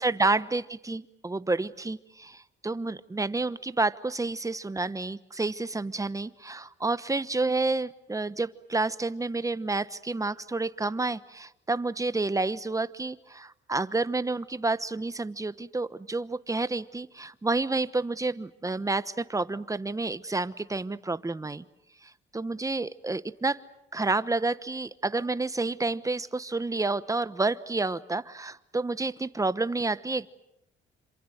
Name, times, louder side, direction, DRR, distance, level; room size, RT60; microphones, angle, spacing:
voice 1, 0.0-21.6 22.0-23.6 23.9-30.3, right 3 dB, 15° right, 15 dB, 1.1 m, -29 dB
28.0 x 26.5 x 8.0 m, 0.83 s
cardioid pair, 90°, 20 cm